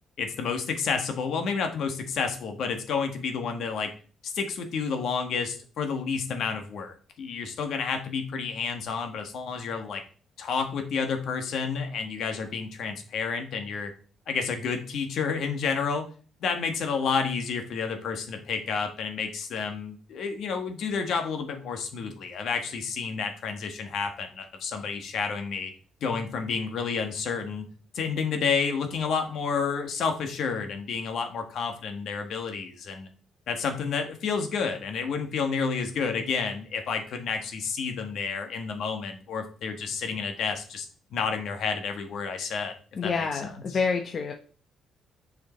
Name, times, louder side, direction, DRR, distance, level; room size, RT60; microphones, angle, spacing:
voice 1, 0.2-3.9 4.2-10.0 10.4-13.9 14.3-16.1 16.4-25.7 26.0-27.7 27.9-33.1 33.5-40.9 41.1-42.7 43.0-43.8, left 5 dB, 70° left, 6 dB, 1.5 m, -30 dB
voice 2, 43.0-44.3, left 5 dB, 50° left, 3 dB, 0.8 m, -28 dB
6.8 x 4.9 x 4.4 m, 0.40 s
cardioid pair, 90°, 0 cm